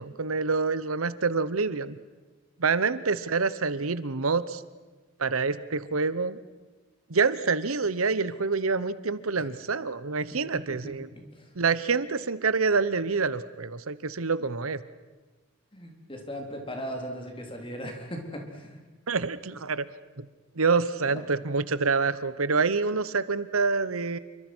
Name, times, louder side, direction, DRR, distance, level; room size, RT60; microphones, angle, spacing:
voice 1, 0.0-2.0 2.6-4.6 5.2-6.4 7.1-11.1 11.6-14.8 19.1-19.9 20.2-20.3 20.6-24.2, right 4 dB, 85° right, 15 dB, 1.0 m, -27 dB
voice 2, 10.7-11.5 15.7-18.9 21.1-21.2, equal, 25° left, 2 dB, 3.9 m, -38 dB
28.0 x 24.5 x 6.3 m, 1.3 s
head